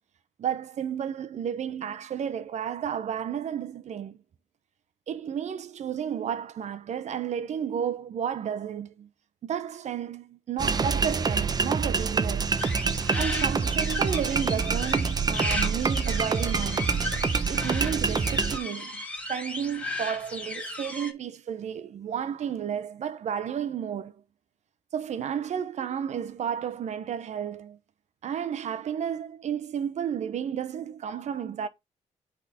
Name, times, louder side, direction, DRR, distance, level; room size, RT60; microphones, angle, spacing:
voice 1, 0.4-4.2 5.1-9.1 9.4-12.6 13.2-16.9 17.5-19.0 19.3-24.1 24.9-27.8 28.2-31.7, right 8 dB, 60° right, 0.8 m, -32 dB
sound 1, 10.6-18.6, right 5 dB, 30° right, 0.7 m, -26 dB
sound 2, 12.6-21.1, left 1 dB, 10° left, 1.8 m, -35 dB
8.1 x 3.7 x 4.3 m
cardioid pair, 100°, 13 cm